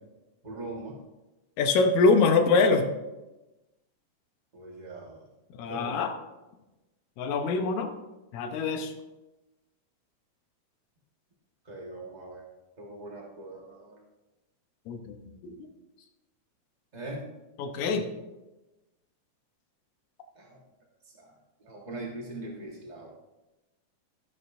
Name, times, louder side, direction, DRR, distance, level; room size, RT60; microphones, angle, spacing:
voice 1, 0.4-0.9 4.5-5.2 5.7-6.0 11.6-12.5 12.8-13.9 16.9-17.3 20.3-20.6 21.1-21.3 21.6-23.1, right 2 dB, 40° right, -2 dB, 0.5 m, -41 dB
voice 2, 1.6-2.9 5.6-6.1 7.2-7.9 8.3-8.9 14.9-15.6 17.6-18.1, left 4 dB, 80° left, 5 dB, 2.2 m, -24 dB
12.5 x 11.0 x 2.6 m, 1.0 s
omnidirectional pair, 3.3 m